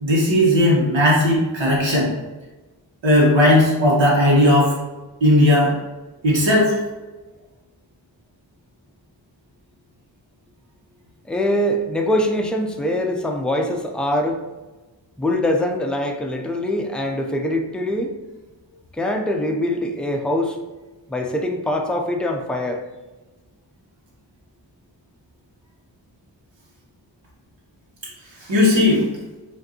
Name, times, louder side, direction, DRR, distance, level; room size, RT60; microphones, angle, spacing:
voice 1, 0.0-2.1 3.0-4.7 5.2-5.7 6.2-6.8 28.5-29.1, left 1 dB, 90° right, -5 dB, 1.2 m, -16 dB
voice 2, 11.3-14.4 15.2-18.1 18.9-20.6 21.1-22.8, left 1 dB, ahead, 2 dB, 0.4 m, -23 dB
5.1 x 2.6 x 2.8 m, 1.2 s
wide cardioid pair, 75°, 44 cm